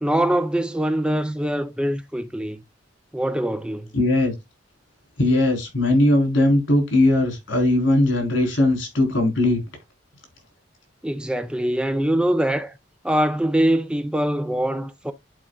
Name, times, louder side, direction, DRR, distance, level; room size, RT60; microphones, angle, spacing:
voice 1, 0.0-2.6 3.1-3.9 11.0-12.7 13.0-15.1, right 1 dB, 5° right, 0.5 m, -23 dB
voice 2, 3.9-4.3 5.2-9.6, left 1 dB, 75° left, 4.1 m, -19 dB
11.5 x 4.7 x 2.4 m
head